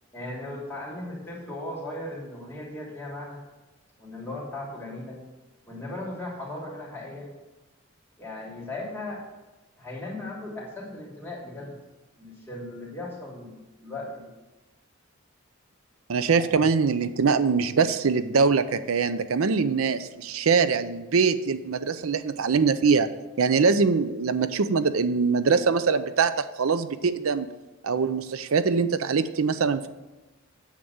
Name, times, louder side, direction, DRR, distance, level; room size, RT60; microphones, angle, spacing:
voice 1, 0.1-3.4 4.0-5.2 5.7-7.3 8.2-9.2 9.8-11.8 12.2-14.3 16.3-16.5, left 2 dB, 10° left, -5 dB, 3.2 m, -37 dB
voice 2, 16.1-23.1 23.4-26.3 26.6-27.5 27.8-29.9, right 5 dB, 90° right, 13 dB, 0.6 m, -23 dB
8.7 x 7.5 x 7.1 m, 1.1 s
head